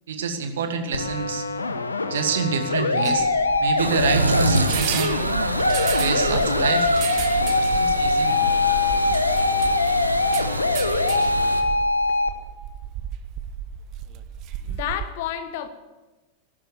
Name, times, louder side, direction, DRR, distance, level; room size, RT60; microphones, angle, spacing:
voice 1, 0.1-1.4 2.1-3.3 3.6-5.2 5.9-6.9 7.5-8.4, right 6 dB, 60° right, 8 dB, 1.7 m, -27 dB
sound 1, 0.9-12.3, left 3 dB, 75° left, 1.0 m, -23 dB
sound 2, 3.0-15.1, right 10 dB, 40° right, 0.9 m, -34 dB
sound 3, 3.8-11.6, right 2 dB, 80° right, 0.9 m, -26 dB
voice 2, 14.6-15.7, left 11 dB, 50° left, 11 dB, 1.4 m, -30 dB
15.5 x 12.5 x 6.7 m, 1.2 s
figure-of-eight pair, 90°, 0 cm